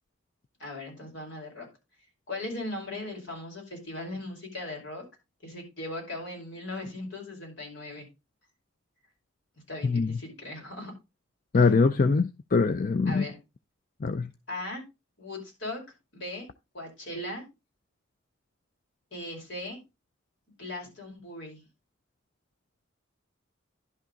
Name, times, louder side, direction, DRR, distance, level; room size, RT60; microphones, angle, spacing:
voice 1, 0.6-1.7 2.3-5.0 5.4-8.1 9.7-10.9 13.1-13.4 14.5-14.8 15.2-15.8 16.1-16.5 16.7-17.4 19.1-19.8 20.6-21.6, left 1 dB, 70° left, 5.2 m, -38 dB
voice 2, 9.8-10.2 11.5-13.3 14.0-14.3, left 4 dB, 45° left, 0.5 m, -23 dB
11.0 x 5.9 x 3.9 m
head